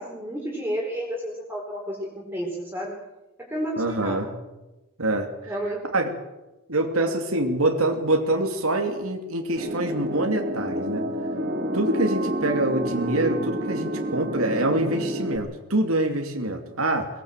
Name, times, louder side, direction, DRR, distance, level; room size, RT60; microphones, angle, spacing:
voice 1, 0.0-2.9 3.4-4.2 5.5-5.8, equal, 10° right, -2 dB, 4.3 m, -31 dB
voice 2, 3.8-4.3 5.0-5.5 5.9-6.1 6.7-11.1 11.7-17.1, right 2 dB, 80° right, 4 dB, 2.8 m, -25 dB
sound 1, 9.6-15.4, equal, 45° right, 3.5 m, -29 dB
22.5 x 19.5 x 7.6 m, 1.0 s
head